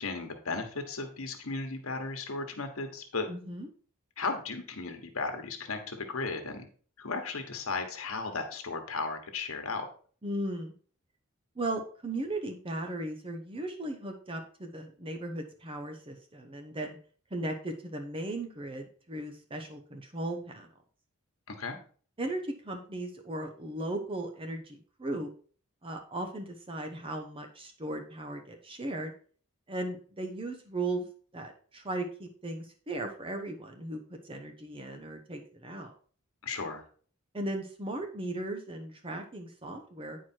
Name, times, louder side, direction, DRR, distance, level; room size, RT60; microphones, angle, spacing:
voice 1, 0.0-3.3 4.2-6.7 7.0-9.9 21.5-21.8 36.4-36.8, left 3 dB, 80° left, 5 dB, 1.3 m, -35 dB
voice 2, 3.3-3.7 10.2-10.7 11.6-17.0 17.3-20.7 22.2-25.3 25.8-29.1 29.7-35.9 37.3-40.2, right 1 dB, 25° right, 4 dB, 0.9 m, -37 dB
9.3 x 4.7 x 4.5 m, 0.43 s
head